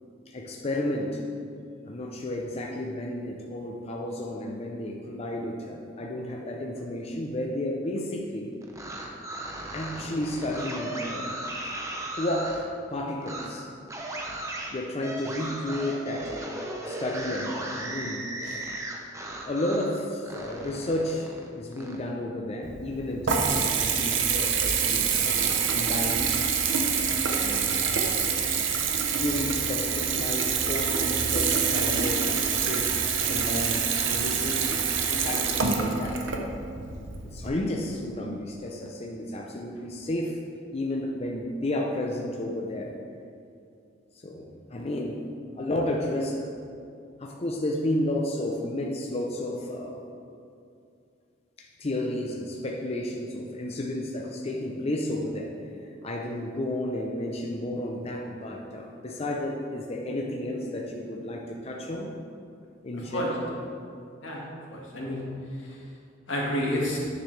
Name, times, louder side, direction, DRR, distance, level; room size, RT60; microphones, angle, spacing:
voice 1, 0.3-1.2 1.8-8.5 9.7-11.5 12.1-13.7 14.7-16.6 16.9-18.6 19.4-26.5 27.4-28.1 29.1-33.0 33.3-34.8 35.1-36.5 37.2-40.4 40.7-42.9 44.2-45.2 45.5-46.5 47.2-50.0 51.6-55.5 56.0-62.1 62.8-63.3, left 1 dB, 35° left, -1 dB, 0.6 m, -32 dB
sound 1, 8.6-12.6 13.2-13.5 13.9-19.9 20.2-22.0, right 1 dB, 15° right, 0.8 m, -36 dB
Water tap faucet / Bathtub (filling or washing) / Trickle dribble, 22.6-37.5, right 6 dB, 75° right, 0.7 m, -26 dB
voice 2, 64.2-65.8 66.3-67.0, equal, 80° left, -3 dB, 1.8 m, -31 dB
9.5 x 6.8 x 3.3 m, 2.4 s
head